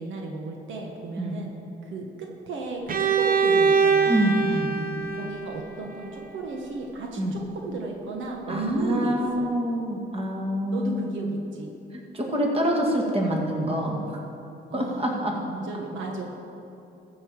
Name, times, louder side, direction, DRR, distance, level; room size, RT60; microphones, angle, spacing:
voice 1, 0.0-1.5 1.8-4.4 5.1-9.5 10.7-11.7 14.7-16.3, right 2 dB, 75° right, 1 dB, 1.4 m, -34 dB
Bowed string instrument, 2.9-6.7, right 5 dB, 45° right, 0.9 m, -24 dB
voice 2, 4.1-4.8 7.2-7.3 8.5-11.2 11.9-14.0 14.7-15.3, equal, 30° right, 0 dB, 2.1 m, -26 dB
14.0 x 5.5 x 7.4 m, 2.8 s
cardioid pair, 90°, 20 cm